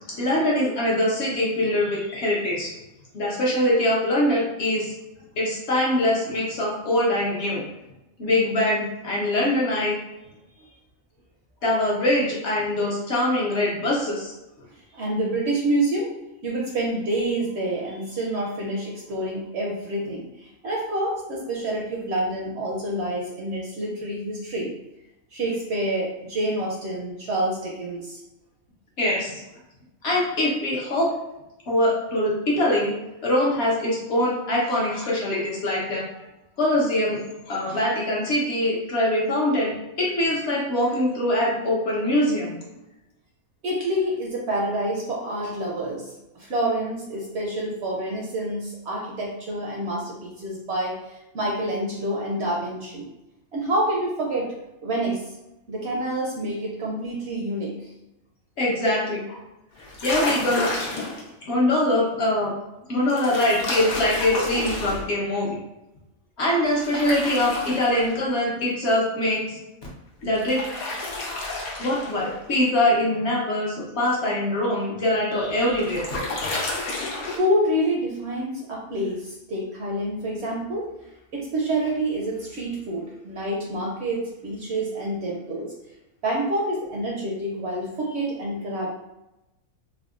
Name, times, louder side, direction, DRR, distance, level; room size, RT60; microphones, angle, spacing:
voice 1, 0.1-2.7 3.1-4.9 5.4-7.6 8.2-10.0 11.6-14.3 29.0-29.4 30.0-31.1 31.7-33.0 33.2-36.0 36.6-37.2 37.5-39.7 40.0-42.6 58.6-59.4 60.0-60.7 61.5-62.5 62.9-65.6 66.4-69.6 70.2-70.6 71.8-76.0, left 1 dB, 60° left, -4 dB, 0.9 m, -23 dB
voice 2, 14.9-16.1 16.4-24.7 25.3-28.2 43.6-53.1 53.5-54.5 54.8-55.2 55.7-57.7 77.4-80.9 81.3-85.7 86.2-88.9, right 1 dB, 65° right, -2 dB, 0.7 m, -27 dB
sound 1, 59.8-61.3 63.1-65.1 66.7-68.4 70.2-72.4 75.3-77.4, left 2 dB, 90° left, 1.2 m, -30 dB
3.5 x 2.0 x 2.3 m, 0.93 s
omnidirectional pair, 1.5 m